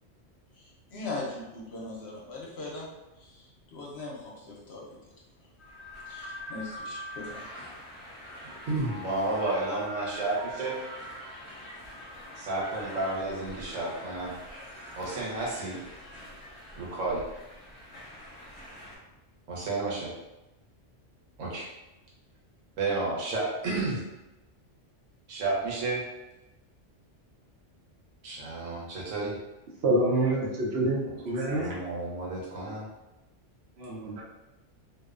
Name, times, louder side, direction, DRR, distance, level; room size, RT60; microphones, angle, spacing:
voice 1, 0.5-2.9 3.2-5.0 6.1-7.5, left 2 dB, 65° left, -4 dB, 0.8 m, -40 dB
sound 1, 5.6-19.0, equal, 25° left, 0.9 m, -44 dB
voice 2, 8.6-10.8 12.4-14.3 15.0-15.8 16.7-17.2 19.5-20.1 21.4-21.7 22.8-24.0 25.3-26.0 28.2-29.4 31.0-31.1 31.5-32.9, right 2 dB, 85° right, -4 dB, 1.1 m, -31 dB
voice 3, 29.8-31.7 33.8-34.2, right 1 dB, 65° right, -4 dB, 0.8 m, -27 dB
2.5 x 2.1 x 2.4 m, 1.0 s
omnidirectional pair, 1.3 m